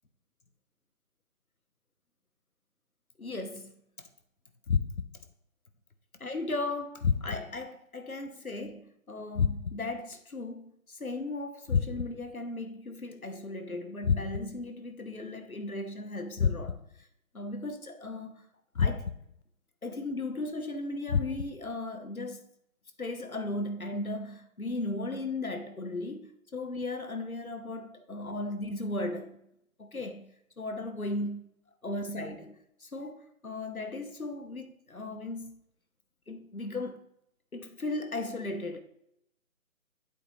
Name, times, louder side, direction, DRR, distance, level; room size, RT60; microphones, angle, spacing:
voice 1, 3.2-3.7 6.2-16.8 17.3-18.4 18.7-19.0 19.8-22.4 23.0-29.4 29.8-30.2 30.6-31.5 31.8-32.5 32.8-35.6 36.3-37.0 37.5-38.8, left 2 dB, 90° left, 1.3 m, -36 dB
sound 1, 4.7-5.3 7.0-7.6 9.3-10.0 11.7-12.3 14.0-14.7 16.4-17.0 18.7-19.4 21.1-21.7, left 6 dB, 55° left, 0.4 m, -30 dB
8.4 x 8.1 x 3.3 m
figure-of-eight pair, 150°, 42 cm